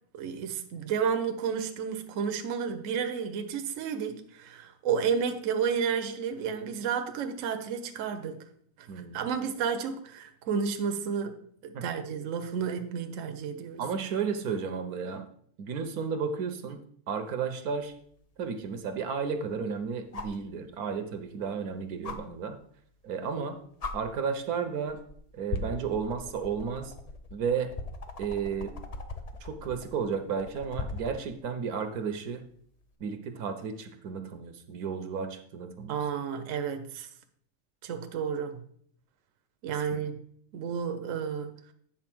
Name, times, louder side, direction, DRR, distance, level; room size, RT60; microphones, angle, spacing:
voice 1, 0.1-8.5 8.8-8.9 9.1-13.8 35.9-37.1 37.8-38.6 39.6-40.2 40.5-41.5, right 6 dB, 60° right, 1.0 m, -31 dB
voice 2, 8.9-9.3 11.7-11.8 13.8-15.2 15.6-16.8 17.1-17.9 18.4-22.6 23.0-23.6 23.9-25.0 25.3-26.9 27.3-27.7 28.2-28.7 29.4-32.4 33.0-36.0 39.9-40.0, right 6 dB, 80° right, 1.3 m, -33 dB
sound 1, 17.9-18.0 20.1-20.4 22.0-22.2 23.3-23.4 23.8-23.9 24.9-25.1 25.5-31.2 32.8-32.9, left 3 dB, 45° left, 0.5 m, -38 dB
9.0 x 3.9 x 6.0 m
omnidirectional pair, 1.6 m